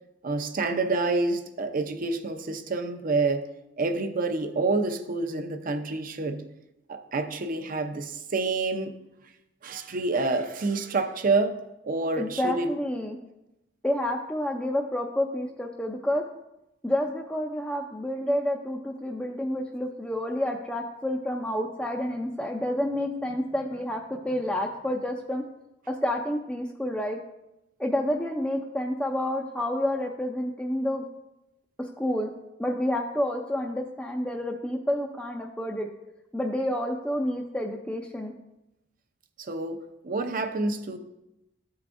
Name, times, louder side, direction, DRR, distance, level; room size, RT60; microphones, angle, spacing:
voice 1, 0.2-3.4 3.8-6.5 6.9-8.9 9.6-11.6 11.8-12.7 39.4-41.0, right 3 dB, 50° right, 6 dB, 0.6 m, -28 dB
voice 2, 12.2-13.2 13.8-16.2 16.8-25.4 25.9-27.2 27.8-31.0 32.0-32.3 32.6-35.9 36.3-38.3, left 1 dB, 5° left, 0 dB, 0.4 m, -29 dB
13.0 x 4.8 x 2.5 m, 0.93 s
head